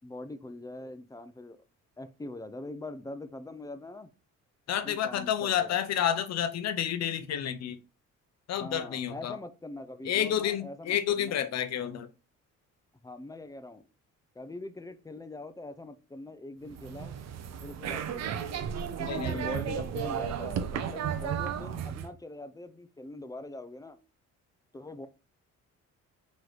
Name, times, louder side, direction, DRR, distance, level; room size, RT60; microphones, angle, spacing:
voice 1, 0.0-1.6 2.0-4.1 4.8-5.8 8.5-11.5 13.0-13.9 14.3-17.2 17.6-18.6 19.0-24.0 24.7-25.1, left 2 dB, 10° left, 0.4 m, -43 dB
voice 2, 4.7-7.8 8.5-9.4 10.0-12.1 19.1-19.5, left 9 dB, 60° left, 0.6 m, -30 dB
sound 1, 16.7-22.1, right 8 dB, 60° right, 0.6 m, -34 dB
3.2 x 3.1 x 3.9 m
cardioid pair, 90°, 30 cm